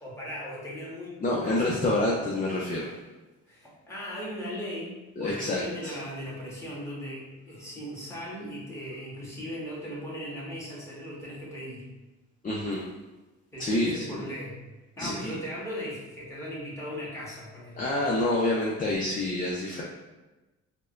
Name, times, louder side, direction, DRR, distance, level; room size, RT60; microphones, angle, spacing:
voice 1, 0.0-1.8 3.5-11.8 13.5-14.6 15.0-17.9, equal, 10° left, -7 dB, 1.5 m, -38 dB
voice 2, 1.2-2.9 5.2-6.0 12.4-12.8 13.6-14.2 15.0-15.4 17.8-19.8, left 1 dB, 30° left, -3 dB, 0.6 m, -27 dB
4.7 x 2.2 x 2.4 m, 1.1 s
cardioid pair, 90°, 30 cm